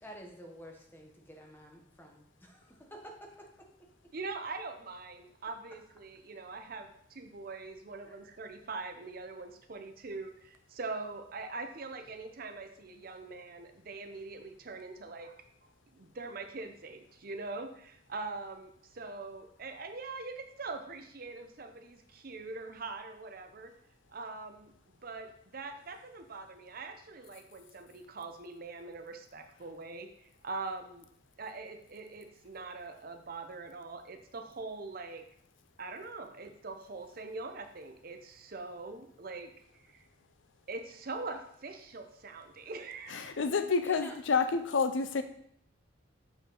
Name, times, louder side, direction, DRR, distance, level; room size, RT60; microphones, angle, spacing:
voice 1, 0.0-3.7 8.0-8.2 43.8-44.1, equal, 10° left, 1 dB, 1.1 m, -49 dB
voice 2, 4.1-15.4 15.9-23.7 24.1-31.1 31.4-35.2 35.8-40.1 40.7-43.4, right 3 dB, 50° right, 7 dB, 0.6 m, -43 dB
voice 3, 43.1-45.2, left 5 dB, 75° left, 10 dB, 0.5 m, -29 dB
6.8 x 5.1 x 3.8 m, 0.69 s
head